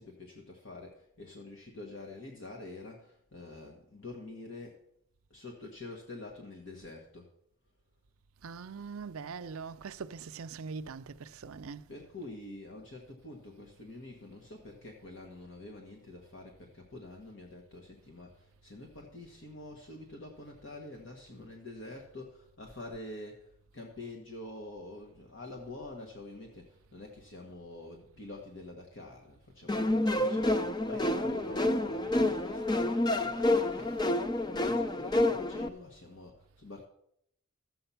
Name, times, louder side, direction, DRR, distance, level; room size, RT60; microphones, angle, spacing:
voice 1, 0.0-4.8 5.3-7.3 11.9-34.0 34.5-36.9, left 2 dB, 60° left, 1.4 m, -46 dB
voice 2, 8.4-11.8 33.8-34.0, right 5 dB, 80° right, 0.5 m, -42 dB
sound 1, 29.7-35.7, left 1 dB, 20° left, 0.5 m, -28 dB
13.5 x 7.8 x 5.7 m
head